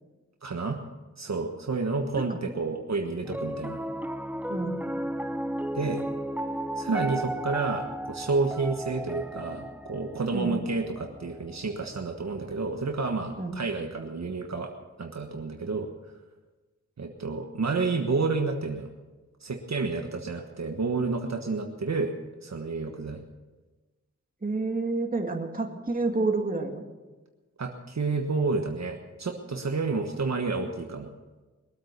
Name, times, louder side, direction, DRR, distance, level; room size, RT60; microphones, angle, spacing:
voice 1, 0.4-0.8 1.2-3.8 5.7-6.0 6.8-14.7 15.0-15.9 17.0-18.9 19.4-22.1 22.4-23.2 27.6-31.1, right 3 dB, 60° right, 3 dB, 1.4 m, -30 dB
Piano, 3.2-13.6, right 1 dB, 5° right, 0.6 m, -35 dB
voice 2, 24.4-26.8, right 3 dB, 30° right, 3 dB, 2.2 m, -29 dB
22.0 x 8.7 x 6.7 m, 1.2 s
wide cardioid pair, 70°, 30 cm